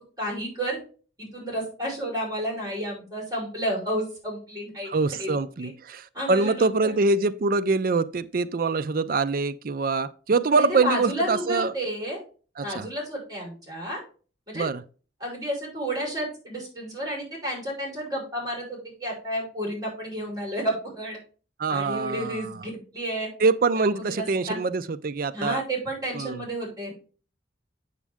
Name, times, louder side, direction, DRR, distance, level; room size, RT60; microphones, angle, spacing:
voice 1, 0.2-0.8 1.2-5.7 6.1-6.9 10.5-12.2 12.6-14.0 14.5-14.6 15.2-21.2 21.7-23.3 23.8-24.6 25.3-26.9, equal, 20° right, 5.3 m, -31 dB
voice 2, 4.9-11.7 12.6-12.9 14.5-14.8 21.6-22.5 23.4-25.6 26.1-26.4, right 3 dB, 55° right, 0.5 m, -24 dB
8.3 x 7.3 x 3.5 m
head